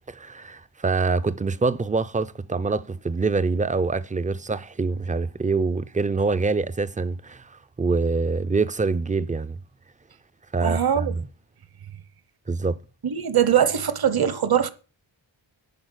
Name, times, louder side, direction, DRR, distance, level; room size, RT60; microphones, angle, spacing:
voice 1, 0.1-9.6 10.5-11.3 12.5-12.8, right 4 dB, 15° right, 0.5 m, -25 dB
voice 2, 10.6-11.2 13.0-14.7, right 9 dB, 50° right, 1.1 m, -21 dB
11.0 x 4.8 x 8.0 m
wide cardioid pair, 125°, 48 cm